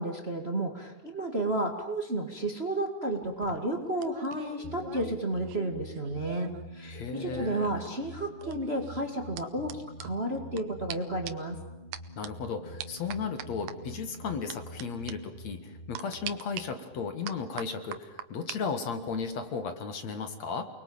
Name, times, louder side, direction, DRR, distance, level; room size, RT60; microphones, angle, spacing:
voice 1, 0.0-11.6, right 1 dB, 20° right, 5 dB, 2.0 m, -32 dB
sound 1, 3.2-6.6 6.9-10.6 10.9-11.0 11.3-11.5 11.9-12.3 12.8-13.8 14.5-14.8 15.1-15.2 15.9-16.6 17.3-18.6 18.9-19.3, right 11 dB, 80° right, 2.8 m, -43 dB
sound 2, 4.6-17.8, equal, 10° left, 2.4 m, -46 dB
voice 2, 6.8-7.8 12.2-20.6, left 5 dB, 55° left, 8 dB, 2.8 m, -35 dB
29.0 x 22.0 x 8.8 m, 0.98 s
omnidirectional pair, 3.9 m